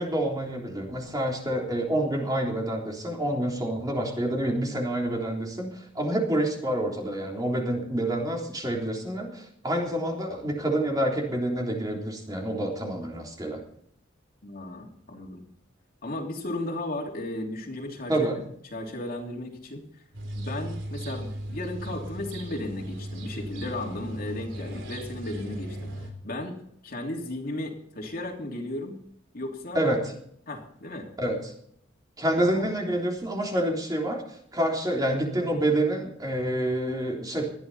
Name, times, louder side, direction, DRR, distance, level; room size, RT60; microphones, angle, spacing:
voice 1, 0.0-13.6 18.1-18.4 29.7-30.1 31.2-31.5 32.2-37.5, right 1 dB, 20° right, 0 dB, 3.6 m, -28 dB
voice 2, 14.4-15.4 16.0-18.3 18.7-19.8 20.4-25.8 26.2-26.6 26.8-29.0 29.3-29.8 30.5-31.1 32.5-32.6, left 1 dB, 50° left, 1 dB, 3.0 m, -35 dB
sound 1, 20.1-26.1, right 1 dB, 70° right, 3.5 m, -37 dB
20.0 x 13.0 x 4.2 m, 0.68 s
head